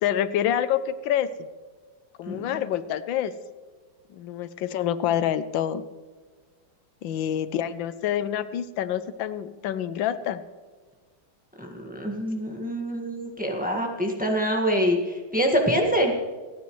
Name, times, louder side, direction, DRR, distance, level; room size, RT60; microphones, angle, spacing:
voice 1, 0.0-1.3 2.2-3.3 4.1-5.8 7.0-10.4, left 10 dB, 90° left, 13 dB, 1.4 m, -27 dB
voice 2, 2.3-2.6 11.6-16.1, equal, 5° right, 1 dB, 1.5 m, -25 dB
28.5 x 9.6 x 3.2 m, 1.4 s
omnidirectional pair, 2.1 m